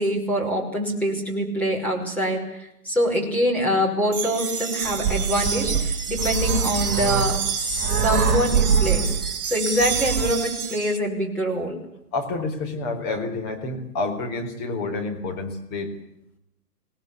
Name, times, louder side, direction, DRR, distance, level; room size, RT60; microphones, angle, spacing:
voice 1, 0.0-9.1 9.5-11.8, equal, 5° left, -2 dB, 5.3 m, -25 dB
sound 1, 4.1-11.0, right 6 dB, 65° right, 4.3 m, -29 dB
sound 2, 4.8-10.3, right 6 dB, 20° right, 3.9 m, -24 dB
voice 2, 12.1-16.0, left 3 dB, 20° left, 4 dB, 4.2 m, -29 dB
26.5 x 18.5 x 8.6 m, 0.78 s
hypercardioid pair, 150°, 47 cm